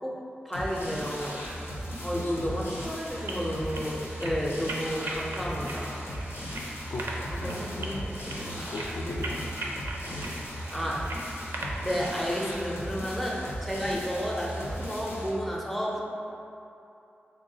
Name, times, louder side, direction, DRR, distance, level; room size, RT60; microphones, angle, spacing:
voice 1, 0.4-1.4 2.0-5.9 7.3-8.5 10.1-10.2 10.7-11.2 11.8-16.0, equal, 5° left, -4 dB, 0.5 m, -32 dB
sound 1, 0.5-15.3, equal, 90° left, 0.8 m, -37 dB
voice 2, 2.1-2.7 6.5-7.0 7.4-8.0 8.4-9.6 9.9-10.7, left 1 dB, 65° left, -1 dB, 0.4 m, -38 dB
sound 2, 3.1-12.2, right 1 dB, 80° right, 0.4 m, -40 dB
3.5 x 2.3 x 3.8 m, 2.8 s
wide cardioid pair, 85°, 4 cm